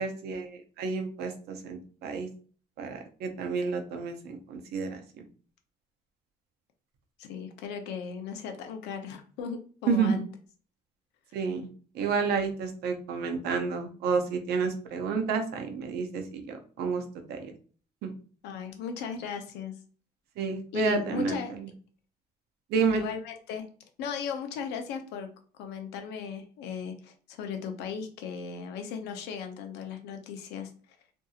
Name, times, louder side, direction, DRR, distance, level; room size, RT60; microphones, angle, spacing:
voice 1, 0.0-2.3 2.8-5.0 9.9-10.2 11.3-11.7 11.9-17.0 17.3-17.5 18.0-18.1 20.4-21.4 22.7-23.0, right 5 dB, 75° right, 6 dB, 0.6 m, -30 dB
voice 2, 7.2-10.3 18.4-19.8 20.7-21.5 22.9-23.7 24.0-25.3 25.5-30.7, left 6 dB, 85° left, 5 dB, 0.6 m, -37 dB
2.7 x 2.6 x 2.4 m, 0.42 s
cardioid pair, 110°, 17 cm